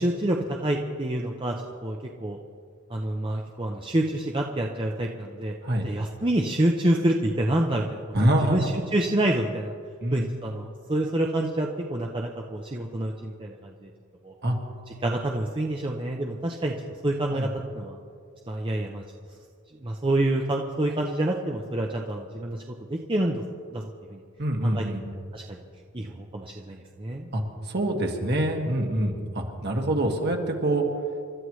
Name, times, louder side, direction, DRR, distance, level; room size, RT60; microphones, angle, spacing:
voice 1, 0.0-1.6 1.8-2.4 2.9-5.5 5.8-8.0 8.5-9.7 10.1-13.9 14.2-14.3 15.0-16.7 17.0-17.5 17.7-18.0 18.5-19.0 19.8-23.4 23.7-24.2 24.6-24.9 25.3-25.6 25.9-27.3, right 1 dB, 25° right, 1 dB, 0.7 m, -27 dB
voice 2, 8.1-8.7 10.0-10.3 14.4-14.6 17.3-17.5 24.4-25.0 27.3-27.4 27.7-30.9, right 1 dB, 50° right, 1 dB, 1.9 m, -25 dB
28.5 x 13.0 x 3.2 m, 2.3 s
head